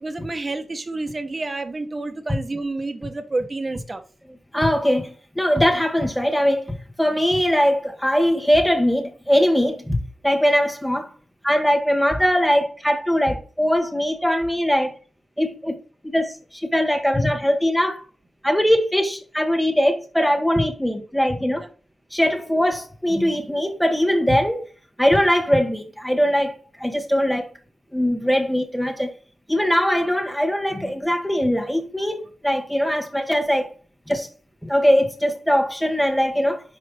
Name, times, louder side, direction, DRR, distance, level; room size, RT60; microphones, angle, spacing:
voice 1, 0.0-4.0 21.6-21.7, right 2 dB, 35° right, 1.0 m, -29 dB
voice 2, 4.5-11.1 11.4-14.9 15.4-15.7 16.0-18.0 18.4-21.6 22.1-24.6 25.0-27.5 27.9-29.1 29.5-33.7 34.1-34.3 34.6-36.6, equal, 5° left, 1.7 m, -21 dB
5.4 x 4.9 x 4.2 m
cardioid pair, 55°, 0 cm